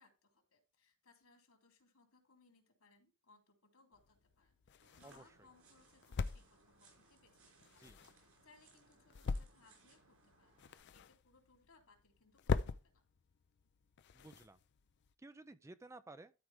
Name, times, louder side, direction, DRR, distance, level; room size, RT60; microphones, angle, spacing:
voice 1, 0.0-13.0, left 3 dB, 75° left, 3.3 m, -69 dB
sound 1, 3.9-15.1, left 4 dB, 50° left, 0.5 m, -44 dB
sound 2, 4.8-10.8, right 3 dB, 75° right, 5.6 m, -68 dB
voice 2, 5.0-5.3 7.8-8.0 14.1-14.6 15.2-16.3, right 2 dB, 15° right, 0.4 m, -55 dB
12.5 x 4.7 x 3.5 m
head